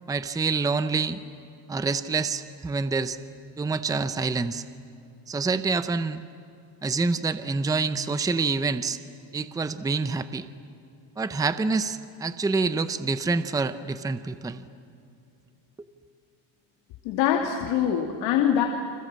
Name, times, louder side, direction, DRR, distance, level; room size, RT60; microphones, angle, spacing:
voice 1, 0.1-1.2 1.7-3.2 3.6-4.6 5.3-6.2 6.8-9.0 9.3-10.5 11.2-14.6, right 4 dB, 10° right, 12 dB, 0.7 m, -27 dB
voice 2, 17.1-18.7, left 9 dB, 85° left, 2 dB, 2.5 m, -23 dB
30.0 x 26.5 x 7.6 m, 2.7 s
cardioid pair, 150°, 45 cm